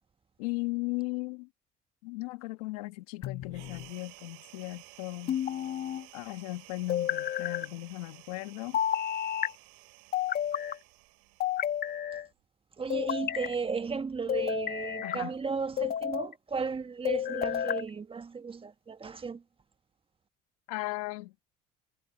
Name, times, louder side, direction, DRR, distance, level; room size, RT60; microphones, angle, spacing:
voice 1, 0.4-1.5 2.0-5.4 6.1-8.8 15.0-15.3 20.7-21.3, left 22 dB, 85° left, 1.6 m, -37 dB
sound 1, 3.2-3.9 5.3-6.0 6.9-7.7 8.7-9.5 10.1-10.8 11.4-12.3 12.9-13.5 14.3-15.2 15.8-16.3 17.1-17.9, left 10 dB, 55° left, 2.0 m, -31 dB
sound 2, 3.5-12.4, right 30 dB, 80° right, 6.4 m, -54 dB
voice 2, 12.8-19.4, right 5 dB, 30° right, 1.4 m, -35 dB
supercardioid pair, 70°, 19 cm